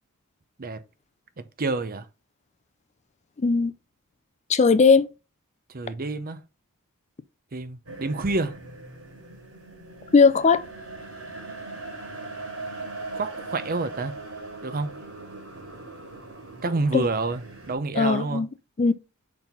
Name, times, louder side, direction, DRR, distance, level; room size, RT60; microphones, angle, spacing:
voice 1, 1.4-2.1 5.7-6.4 7.5-8.6 13.1-14.2 14.6-15.0 16.6-18.4, right 3 dB, 40° right, 0.7 m, -28 dB
voice 2, 3.4-3.7 4.5-5.1 10.1-10.6 16.9-17.1 18.0-18.5 18.8-18.9, left 4 dB, 30° left, 0.4 m, -18 dB
sound 1, 7.9-17.8, right 2 dB, 65° right, 3.3 m, -40 dB
5.4 x 4.6 x 5.3 m
head